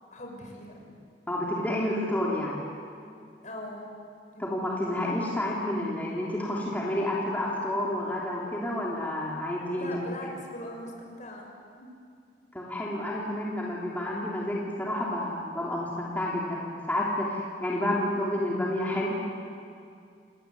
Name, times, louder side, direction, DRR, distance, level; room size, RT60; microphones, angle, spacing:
voice 1, 0.1-0.9 3.4-3.9 4.3-4.5 9.7-11.5 11.8-11.9, left 1 dB, 45° left, 1 dB, 6.2 m, -40 dB
voice 2, 1.3-2.6 4.4-9.9 12.5-19.3, left 1 dB, 10° left, -5 dB, 3.4 m, -30 dB
29.0 x 20.0 x 9.5 m, 2.4 s
head